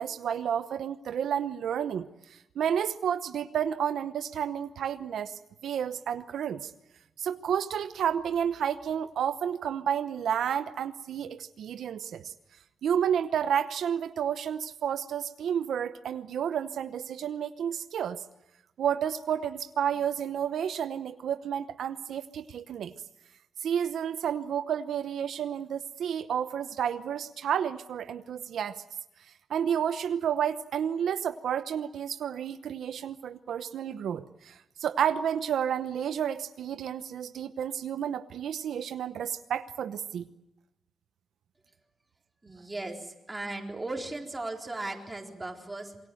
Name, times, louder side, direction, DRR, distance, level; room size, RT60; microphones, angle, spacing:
voice 1, 0.0-6.7 7.2-12.3 12.8-18.2 18.8-22.9 23.6-28.8 29.5-40.3, right 8 dB, 85° right, 10 dB, 0.9 m, -31 dB
voice 2, 42.4-46.0, right 2 dB, 15° right, 2 dB, 4.0 m, -37 dB
27.0 x 23.0 x 7.8 m, 0.89 s
cardioid pair, 120°, 0 cm